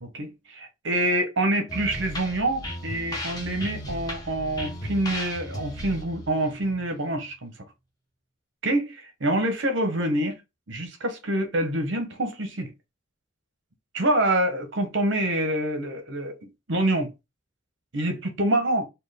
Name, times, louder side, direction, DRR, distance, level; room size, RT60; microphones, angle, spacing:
voice 1, 0.0-7.5 8.6-10.3 10.7-12.7 13.9-17.1 17.9-18.8, right 1 dB, 65° right, 0.9 m, -26 dB
sound 1, 1.7-7.3, left 1 dB, 20° left, 1.0 m, -36 dB
4.4 x 2.3 x 3.4 m
head